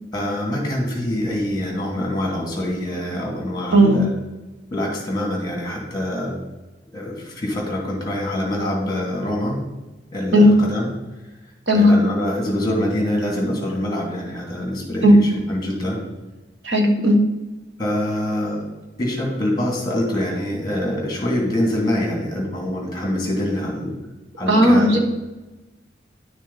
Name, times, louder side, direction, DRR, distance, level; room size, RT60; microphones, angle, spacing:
voice 1, 0.1-4.1 4.7-6.3 6.9-9.6 10.1-10.9 11.7-16.0 17.8-18.7 19.0-23.9 24.4-25.0, left 1 dB, 20° left, -1 dB, 2.6 m, -25 dB
voice 2, 16.6-17.2 24.5-25.0, equal, 70° right, 2 dB, 1.5 m, -14 dB
11.0 x 6.3 x 4.1 m, 1.1 s
head